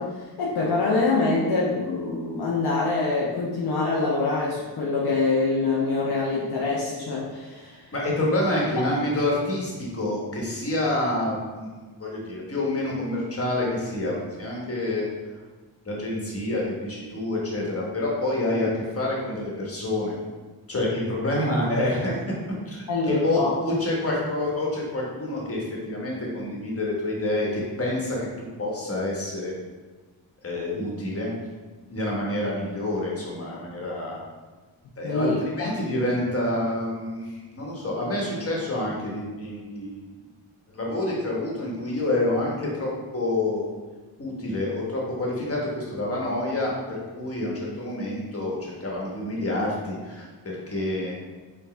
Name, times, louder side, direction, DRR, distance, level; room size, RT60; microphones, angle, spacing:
voice 1, 0.0-7.9 22.9-23.6 35.0-35.7, left 3 dB, 65° left, -5 dB, 0.7 m, -25 dB
voice 2, 7.9-11.7 12.0-15.1 15.8-20.1 20.7-22.2 22.7-29.5 30.4-31.3 31.9-34.2 35.0-40.1 40.7-43.6 44.2-51.1, left 1 dB, 35° left, -3 dB, 1.3 m, -28 dB
4.7 x 2.4 x 3.2 m, 1.3 s
cardioid pair, 65°, 43 cm